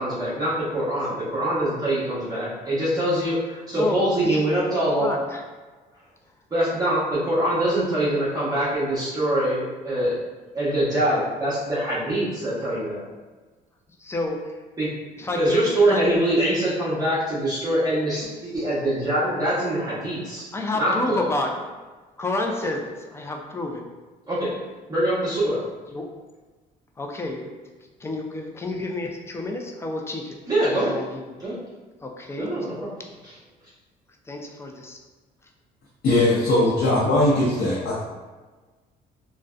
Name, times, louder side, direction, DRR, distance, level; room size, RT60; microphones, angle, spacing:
voice 1, 0.0-5.2 6.5-10.2 10.5-13.0 14.8-15.0 15.4-20.5 20.8-21.3 24.3-24.6 24.9-25.6 30.5-31.0 31.4-31.6 32.4-33.0 33.2-33.4, right 1 dB, 20° right, -10 dB, 0.8 m, -24 dB
voice 2, 3.7-4.0 4.3-4.4 4.9-5.4 14.0-14.4 15.2-15.6 15.9-16.2 20.5-21.6 22.2-23.8 25.9-26.1 27.0-27.5 28.0-30.4 30.9-31.2 32.0-32.5 34.3-35.0, left 2 dB, 15° left, 1 dB, 0.3 m, -29 dB
voice 3, 36.0-38.0, left 1 dB, 60° left, -7 dB, 0.7 m, -20 dB
2.5 x 2.1 x 2.3 m, 1.3 s
cardioid pair, 110°, 17 cm